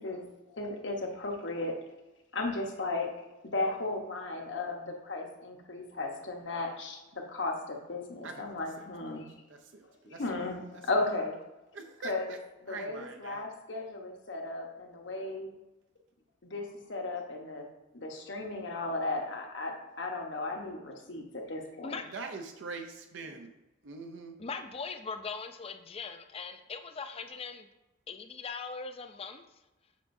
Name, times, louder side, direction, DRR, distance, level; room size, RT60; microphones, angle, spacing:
voice 1, 0.0-1.8 2.3-3.1 3.4-9.3 10.1-11.4 12.0-12.3 12.6-15.5 16.4-17.7 17.9-22.0, left 2 dB, 70° left, 2 dB, 1.1 m, -35 dB
voice 2, 9.5-10.7 11.7-12.4 12.7-13.5 22.1-23.5 23.8-24.4, right 4 dB, 80° right, 4 dB, 0.6 m, -43 dB
voice 3, 24.4-27.7 28.1-29.4, left 5 dB, 30° left, 8 dB, 0.4 m, -40 dB
7.2 x 5.6 x 2.6 m, 1.0 s
head